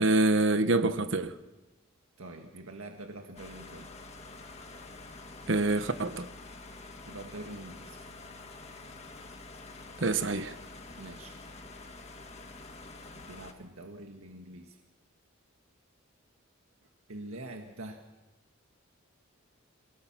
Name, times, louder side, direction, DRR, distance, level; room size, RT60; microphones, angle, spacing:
voice 1, 0.0-1.3 5.5-6.3 10.0-10.5, right 2 dB, 60° right, 1.1 m, -26 dB
voice 2, 2.2-3.9 7.1-8.0 11.0-11.4 13.1-14.8 17.1-18.0, right 2 dB, 90° right, 1.8 m, -45 dB
sound 1, 3.4-13.5, left 3 dB, 30° left, 1.7 m, -47 dB
30.0 x 17.5 x 6.1 m
head